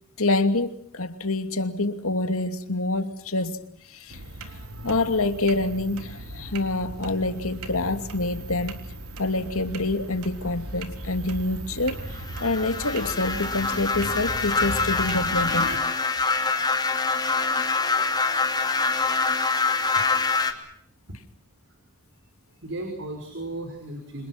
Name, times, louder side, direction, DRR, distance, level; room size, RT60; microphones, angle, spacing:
voice 1, 0.2-3.6 3.9-4.2 4.8-8.8 9.2-12.0 12.4-15.7, left 2 dB, 70° left, 2.6 m, -26 dB
sound 1, 4.1-15.8, right 2 dB, 80° right, 3.6 m, -38 dB
sound 2, 12.2-20.5, left 4 dB, 20° left, 3.2 m, -25 dB
voice 2, 22.5-24.3, right 2 dB, 60° right, 5.5 m, -35 dB
29.5 x 27.0 x 6.0 m
head